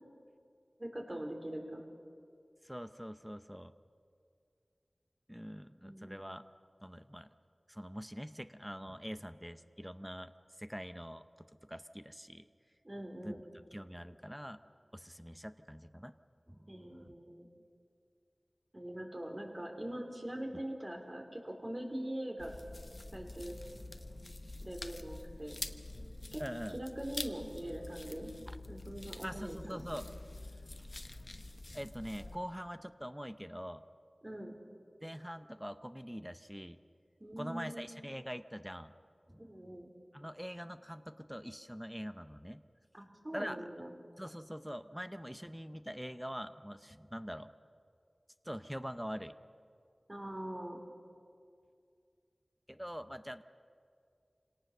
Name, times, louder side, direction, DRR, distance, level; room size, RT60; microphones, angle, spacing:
voice 1, 0.8-1.9 5.8-6.2 12.8-13.4 16.7-17.5 18.7-22.5 23.1-23.6 24.6-25.6 26.3-26.4 26.7-28.3 28.7-29.8 34.2-34.6 37.2-37.9 39.4-39.9 42.9-43.9 50.1-50.8, right 1 dB, 35° right, 2 dB, 3.9 m, -42 dB
voice 2, 2.6-3.7 5.3-6.4 6.8-7.3 7.7-10.3 10.6-11.2 11.6-12.5 13.2-13.3 13.7-14.6 14.9-16.1 16.5-16.7 17.0-17.1 26.4-26.8 28.5-28.6 29.2-30.1 30.8-30.9 31.7-33.8 35.0-36.8 37.4-38.9 39.3-39.4 40.1-42.6 43.3-43.6 44.2-47.5 48.4-49.3 52.7-53.4, equal, 5° right, 10 dB, 0.8 m, -44 dB
sound 1, 22.4-32.3, left 2 dB, 50° left, 1.1 m, -46 dB
26.5 x 18.0 x 6.8 m, 2.3 s
wide cardioid pair, 45°, 0 cm